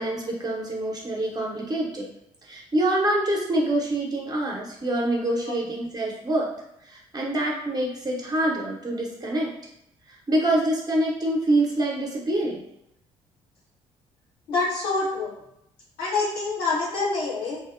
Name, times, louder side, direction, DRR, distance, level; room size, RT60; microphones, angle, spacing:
voice 1, 0.0-2.1 2.5-6.5 6.9-9.5 10.3-12.6, right 1 dB, 25° right, -2 dB, 0.7 m, -25 dB
voice 2, 14.5-15.3 16.0-17.6, left 3 dB, 65° left, -6 dB, 0.9 m, -26 dB
2.7 x 2.0 x 2.4 m, 0.80 s
figure-of-eight pair, 45°, 16 cm